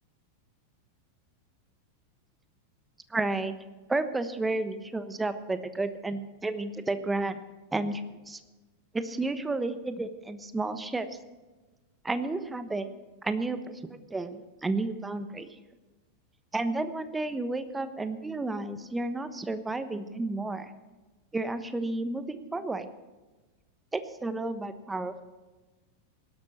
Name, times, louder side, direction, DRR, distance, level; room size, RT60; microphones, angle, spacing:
voice 1, 3.1-3.5 3.9-7.4 7.7-8.4 8.9-11.1 12.0-12.9 13.2-15.5 16.5-20.7 21.3-22.9 23.9-25.2, right 2 dB, 10° right, 11 dB, 1.1 m, -32 dB
18.0 x 12.5 x 4.3 m, 1.2 s
figure-of-eight pair, 90°, 0 cm